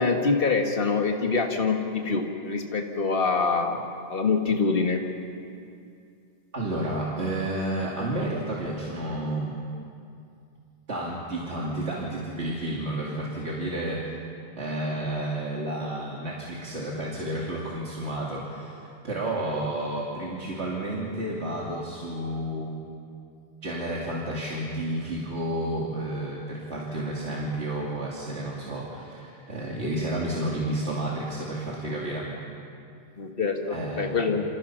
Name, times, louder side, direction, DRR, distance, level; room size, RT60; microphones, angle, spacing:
voice 1, 0.0-3.8 4.1-5.0 33.2-34.4, left 4 dB, 55° left, 2 dB, 2.0 m, -25 dB
voice 2, 6.5-9.6 10.9-14.1 14.5-22.8 23.6-32.3 33.7-34.4, right 1 dB, 85° right, -4 dB, 2.9 m, -31 dB
28.0 x 28.0 x 5.8 m, 2.5 s
omnidirectional pair, 1.1 m